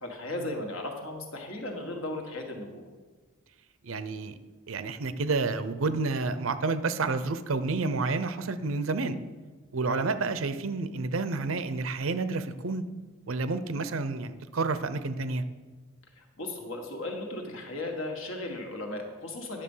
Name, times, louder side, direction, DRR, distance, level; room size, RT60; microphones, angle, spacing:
voice 1, 0.0-2.9 9.8-10.1 16.1-19.6, left 2 dB, 75° left, 2 dB, 1.7 m, -36 dB
voice 2, 3.8-4.4 4.7-9.2 9.7-12.8 13.3-15.4, right 3 dB, 75° right, 12 dB, 0.6 m, -30 dB
10.0 x 6.7 x 5.6 m, 1.3 s
head